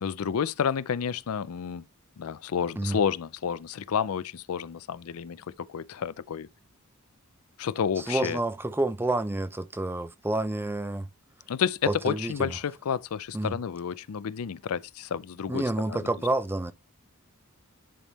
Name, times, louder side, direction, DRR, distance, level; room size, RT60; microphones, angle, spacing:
voice 1, 0.0-1.9 2.2-6.5 7.6-8.4 11.5-16.0, left 7 dB, 80° left, 0.4 m, -30 dB
voice 2, 8.0-11.1 11.9-12.6 13.3-13.6 15.5-16.7, right 2 dB, 10° right, 0.5 m, -29 dB
10.0 x 3.6 x 4.0 m
head